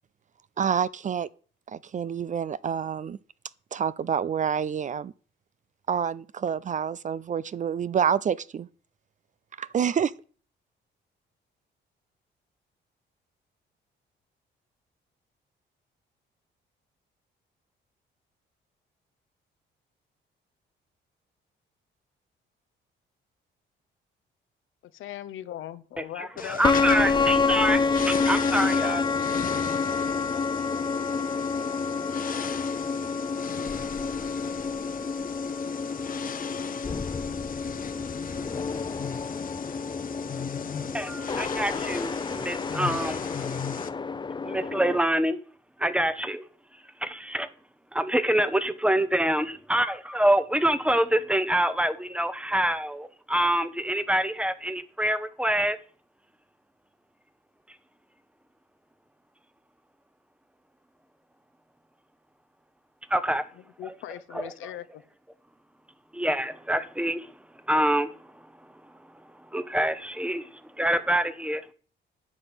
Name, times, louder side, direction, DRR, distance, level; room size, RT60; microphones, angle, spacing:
voice 1, 0.6-1.3 1.7-3.2 3.7-5.1 5.9-8.7 9.6-10.1, right 7 dB, 40° right, 0.4 m, -27 dB
voice 2, 24.9-26.6 63.6-65.0, left 12 dB, 80° left, 0.8 m, -39 dB
voice 3, 26.0-29.0 40.9-43.3 44.4-45.4 45.8-46.4 47.0-47.5 47.9-55.8 63.1-63.4 63.8-63.9 64.3-64.5 66.1-67.3 67.7-68.3 69.5-71.7, right 1 dB, 5° right, 0.9 m, -26 dB
sound 1, 26.4-43.9, left 7 dB, 45° left, 0.9 m, -38 dB
sound 2, 26.6-45.0, left 4 dB, 25° left, 0.6 m, -28 dB
9.6 x 5.2 x 7.9 m
cardioid pair, 90°, 20 cm